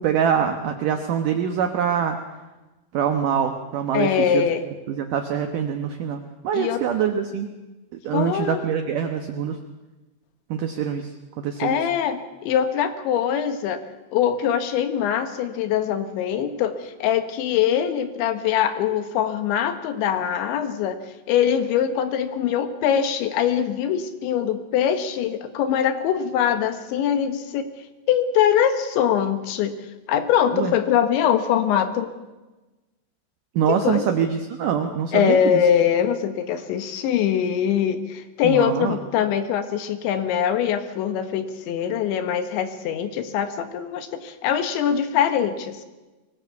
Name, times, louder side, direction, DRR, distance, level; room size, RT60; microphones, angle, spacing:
voice 1, 0.0-2.2 2.9-4.4 4.9-7.5 8.0-9.6 10.5-11.1 11.4-11.8 30.5-30.7 33.6-35.6 38.4-39.0, right 8 dB, 75° right, 5 dB, 1.9 m, -24 dB
voice 2, 3.9-4.7 6.5-6.8 8.1-8.6 11.6-13.8 14.1-21.0 21.3-27.7 28.1-29.8 30.1-32.1 33.7-34.1 35.1-45.9, left 9 dB, 75° left, 9 dB, 3.7 m, -23 dB
23.5 x 18.0 x 8.3 m, 1.1 s
omnidirectional pair, 5.5 m